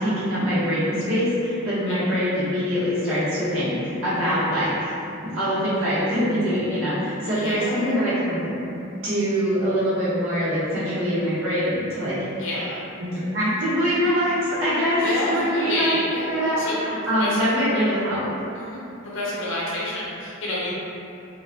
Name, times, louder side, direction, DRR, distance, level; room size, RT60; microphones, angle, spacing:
voice 1, 0.0-4.9 5.2-8.8 9.0-12.2 13.0-15.0 15.3-16.0 16.3-18.3, equal, 70° right, -11 dB, 0.9 m, -24 dB
voice 2, 7.3-8.0 12.4-12.8 15.0-16.8 17.0-17.8 18.5-18.8 19.0-20.7, left 1 dB, 60° left, -6 dB, 0.6 m, -28 dB
2.2 x 2.0 x 2.7 m, 2.8 s
head